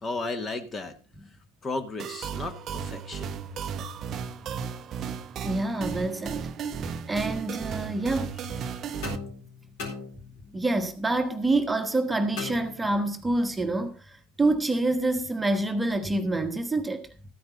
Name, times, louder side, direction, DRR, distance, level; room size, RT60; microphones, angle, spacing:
voice 1, 0.0-0.9 1.6-3.3 8.6-8.8, left 3 dB, 25° left, 1.4 m, -34 dB
sound 1, 2.0-9.2, right 7 dB, 35° right, 0.7 m, -34 dB
voice 2, 5.4-6.4 7.1-8.3 10.5-17.1, right 2 dB, 10° right, 1.2 m, -27 dB
sound 2, 9.0-10.7 12.4-13.3, left 4 dB, 55° left, 4.3 m, -39 dB
13.5 x 9.4 x 3.8 m
figure-of-eight pair, 80°, 0 cm